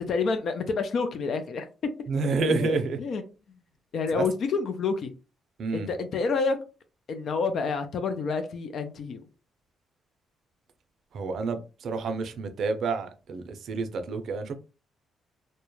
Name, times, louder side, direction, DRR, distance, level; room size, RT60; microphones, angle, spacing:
voice 1, 0.0-1.7 2.5-3.2 3.9-5.1 5.7-6.6 7.1-9.2, left 4 dB, 60° left, 0.3 m, -28 dB
voice 2, 2.1-3.0 4.1-4.3 5.6-5.9 11.1-14.5, right 4 dB, 65° right, 0.4 m, -29 dB
2.2 x 2.0 x 2.9 m
cardioid pair, 90°, 0 cm